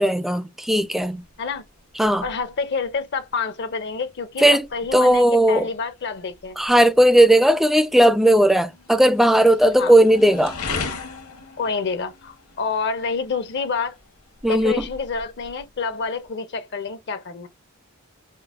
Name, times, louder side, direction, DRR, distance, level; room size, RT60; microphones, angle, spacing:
voice 1, 0.0-1.2 2.0-2.2 4.4-4.7 4.9-5.7 6.6-10.6 14.4-14.9, right 1 dB, ahead, 0.3 m, -16 dB
sound 1, 0.8-16.3, left 4 dB, 80° left, 1.1 m, -40 dB
voice 2, 2.2-4.5 4.7-6.6 9.8-9.9 11.6-14.0 14.4-17.5, left 5 dB, 50° left, 0.5 m, -28 dB
5.1 x 2.1 x 2.4 m
head